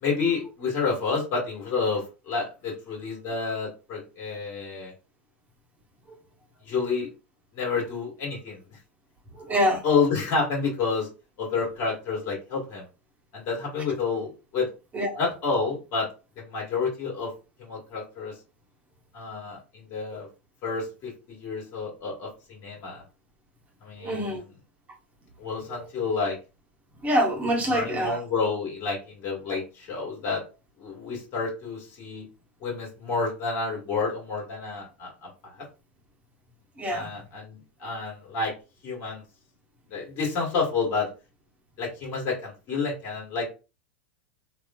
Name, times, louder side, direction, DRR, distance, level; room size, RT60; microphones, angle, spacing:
voice 1, 0.0-4.9 6.6-7.1 7.5-8.8 9.5-9.6 9.8-11.1 11.4-12.9 13.3-14.7 15.2-16.1 16.4-17.3 17.6-18.4 19.1-20.3 20.6-23.0 23.8-24.4 25.4-26.4 27.7-30.4 30.8-32.3 32.6-35.6 36.9-38.5 38.8-39.2 39.9-41.1 41.8-43.5, left 4 dB, 45° left, 1.7 m, -29 dB
voice 2, 9.3-9.8 14.9-15.2 24.0-24.5 25.7-25.9 27.0-28.2 36.8-37.1, equal, 20° right, 1.1 m, -26 dB
2.9 x 2.6 x 2.3 m
hypercardioid pair, 100°, 6 cm